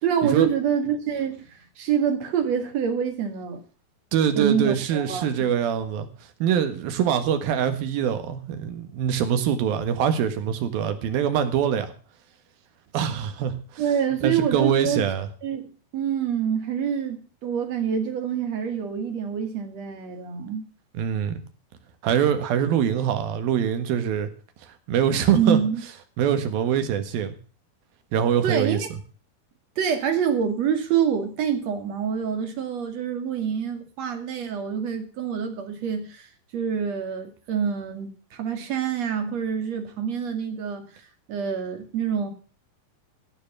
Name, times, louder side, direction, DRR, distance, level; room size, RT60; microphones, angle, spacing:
voice 1, 0.0-3.6 4.3-5.5 13.8-15.1 15.4-20.6 25.3-25.8 28.4-28.9 29.8-40.8 41.3-42.3, right 7 dB, 50° right, 3.2 m, -26 dB
voice 2, 4.1-6.1 6.4-11.9 12.9-13.8 14.2-15.3 20.9-21.4 22.0-24.3 24.9-25.6 26.2-27.4 28.1-28.8, right 8 dB, 85° right, 3.4 m, -24 dB
15.5 x 7.1 x 7.2 m
omnidirectional pair, 4.1 m